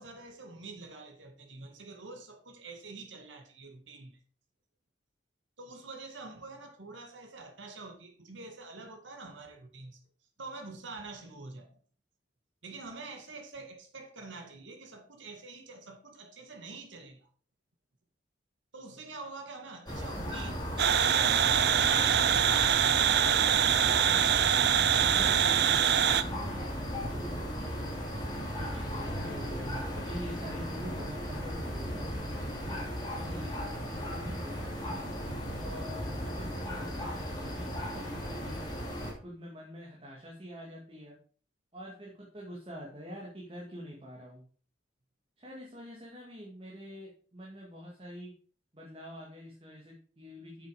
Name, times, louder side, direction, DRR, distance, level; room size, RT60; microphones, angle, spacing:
voice 1, 0.0-4.2 5.6-10.0 10.4-11.8 12.6-17.3 18.7-20.7, right 3 dB, 85° right, 2.1 m, -46 dB
sound 1, 19.9-39.1, equal, 20° left, 2.6 m, -36 dB
sound 2, 20.8-26.2, right 9 dB, 60° right, 0.5 m, -24 dB
voice 2, 23.6-28.0 28.5-32.1 32.6-32.8 33.1-35.0 35.6-38.6 39.2-41.2 41.7-44.4 45.4-48.3 48.7-50.7, equal, 30° right, 2.0 m, -45 dB
8.5 x 7.0 x 4.9 m
head